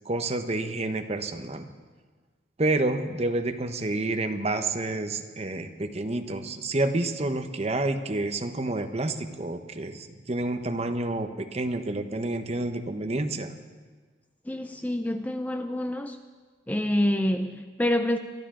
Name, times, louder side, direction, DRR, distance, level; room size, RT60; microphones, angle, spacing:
voice 1, 0.0-1.7 2.6-13.5, right 2 dB, 35° right, 7 dB, 0.9 m, -29 dB
voice 2, 14.5-16.2 16.7-18.2, left 1 dB, 10° left, 7 dB, 0.4 m, -27 dB
24.0 x 12.5 x 3.8 m, 1.4 s
head